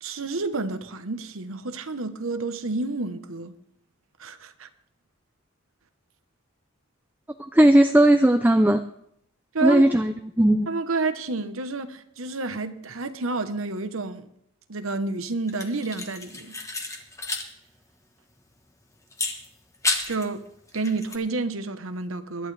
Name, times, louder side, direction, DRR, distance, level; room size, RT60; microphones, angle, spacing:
voice 1, 0.0-3.5 4.2-4.7 9.5-9.9 10.7-14.3 14.7-16.6 20.1-20.4 20.7-22.5, right 3 dB, 75° right, 1.1 m, -29 dB
voice 2, 7.5-8.8 9.6-10.1 10.4-10.7, right 1 dB, 10° right, 0.4 m, -17 dB
sound 1, 15.5-17.5 17.8-17.9 19.1-20.3 20.7-21.2, left 3 dB, 15° left, 1.2 m, -31 dB
21.5 x 11.5 x 3.4 m
head